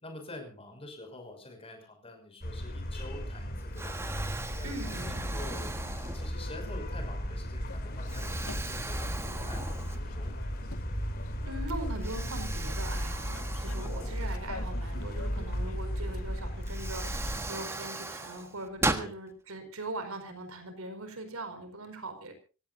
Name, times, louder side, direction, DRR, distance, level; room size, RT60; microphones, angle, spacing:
voice 1, 0.0-4.0 4.6-5.7 6.1-9.9 10.1-10.3 13.9-14.3 19.0-19.1, left 2 dB, 25° left, 5 dB, 6.1 m, -46 dB
sound 1, 2.4-17.5, equal, 45° left, 3.0 m, -35 dB
Explosion, 3.1-3.4 3.8-6.6 7.2-7.4 8.1-10.3 10.7-10.8 12.0-14.7 16.1-16.2 16.6-19.1, right 2 dB, 10° right, 1.3 m, -38 dB
voice 2, 4.6-5.4 11.5-22.3, right 2 dB, 85° right, 7 dB, 5.0 m, -41 dB
sound 2, 7.6-16.4, left 3 dB, 85° left, 1.8 m, -48 dB
26.0 x 17.0 x 2.7 m, 0.35 s
head